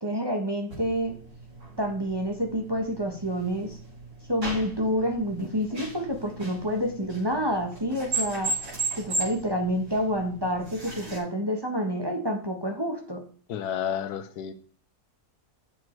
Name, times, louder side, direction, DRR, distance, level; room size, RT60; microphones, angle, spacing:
voice 1, 0.0-1.2 1.8-3.8 4.3-8.5 9.0-13.2, equal, 15° right, 3 dB, 1.4 m, -28 dB
sound 1, 0.7-11.2, right 3 dB, 70° right, 6.0 m, -36 dB
voice 2, 13.5-14.5, left 9 dB, 85° left, 12 dB, 1.3 m, -31 dB
7.9 x 7.1 x 4.6 m, 0.44 s
omnidirectional pair, 1.6 m